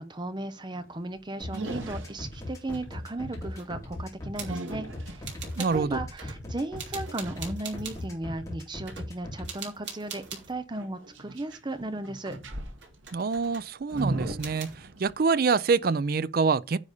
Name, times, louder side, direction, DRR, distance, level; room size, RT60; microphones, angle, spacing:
voice 1, 0.0-5.4 5.7-12.3, right 2 dB, 25° right, 0.7 m, -36 dB
sound 1, 0.7-1.1 1.4-2.7 3.6-7.4 10.2-11.7 12.0-15.3, right 1 dB, 90° right, 1.8 m, -38 dB
sound 2, 1.4-9.4, left 1 dB, 15° left, 2.8 m, -38 dB
sound 3, 2.4-2.9 3.5-3.8 4.4-4.8 5.2-5.9 6.2-6.4 6.8-8.1 8.9-9.1 9.4-10.5 11.7-12.5 12.8-14.1 14.4-14.8, right 6 dB, 65° right, 3.1 m, -43 dB
voice 2, 5.6-6.0 13.1-14.7 15.0-16.8, right 5 dB, 50° right, 0.4 m, -25 dB
9.9 x 4.1 x 6.8 m
head